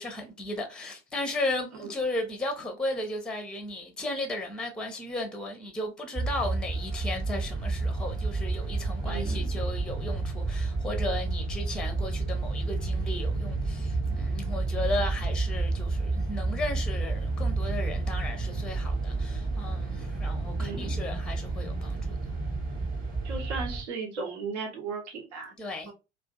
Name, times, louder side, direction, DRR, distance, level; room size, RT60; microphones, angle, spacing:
voice 1, 0.0-22.3 25.6-25.9, left 2 dB, ahead, 0.5 m, -35 dB
sound 1, 6.1-23.8, right 3 dB, 25° right, 1.0 m, -30 dB
voice 2, 9.0-9.6 20.6-21.0 23.2-25.5 25.9-26.0, right 4 dB, 70° right, 0.8 m, -36 dB
2.4 x 2.4 x 2.2 m
figure-of-eight pair, 65°, 35 cm